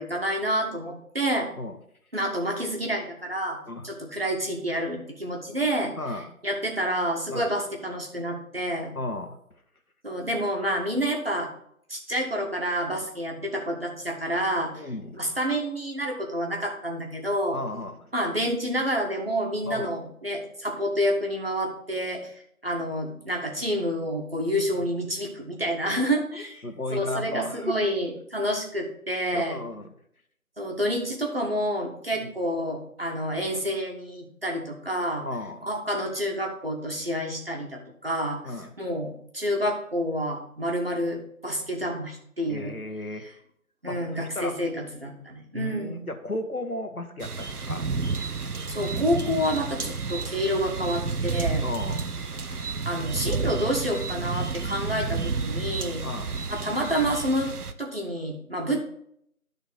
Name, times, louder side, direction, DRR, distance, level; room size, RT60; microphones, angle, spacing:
voice 1, 0.0-1.5 2.1-5.9 6.4-8.9 10.0-11.5 11.9-14.9 15.2-17.6 18.1-22.3 22.6-26.6 26.9-29.6 30.6-35.2 35.6-38.4 38.8-42.7 43.2-43.3 43.8-46.0 48.7-51.6 52.8-56.0 56.5-57.5 57.8-58.8, equal, 40° right, 1 dB, 1.6 m, -28 dB
voice 2, 8.9-9.4 14.8-15.2 17.5-18.1 19.6-19.9 26.6-27.8 29.3-29.9 32.1-32.3 35.2-35.6 38.4-38.7 42.5-43.3 43.8-44.5 45.5-47.8 51.6-52.1 56.0-56.4, left 1 dB, 70° left, 6 dB, 1.5 m, -34 dB
sound 1, 47.2-57.7, right 4 dB, 80° right, 0.9 m, -31 dB
11.5 x 4.1 x 5.5 m, 0.69 s
figure-of-eight pair, 175°, 44 cm